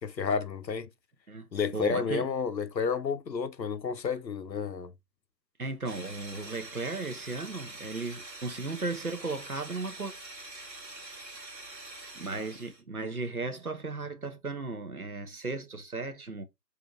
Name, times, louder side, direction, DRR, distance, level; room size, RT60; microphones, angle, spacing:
voice 1, 0.0-0.9 1.5-4.9, left 5 dB, 90° left, 0.7 m, -31 dB
voice 2, 1.3-2.3 5.6-10.1 12.1-16.4, right 3 dB, 60° right, 0.7 m, -36 dB
sound 1, 5.8-12.8, right 2 dB, 90° right, 1.2 m, -45 dB
3.8 x 2.6 x 2.3 m
figure-of-eight pair, 170°, 50 cm